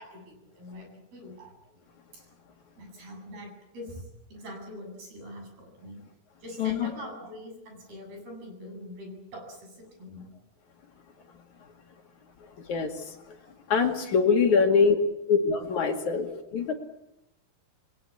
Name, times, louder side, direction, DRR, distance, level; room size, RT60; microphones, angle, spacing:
voice 1, 0.0-1.5 2.1-2.3 2.8-6.0 6.4-10.3 14.6-14.9 16.2-16.4, left 1 dB, 85° right, 3 dB, 10.0 m, -44 dB
voice 2, 6.6-6.9 12.7-12.9 13.7-14.9 15.3-16.7, left 5 dB, 55° left, 4 dB, 3.4 m, -23 dB
29.0 x 21.5 x 8.6 m, 0.86 s
omnidirectional pair, 4.3 m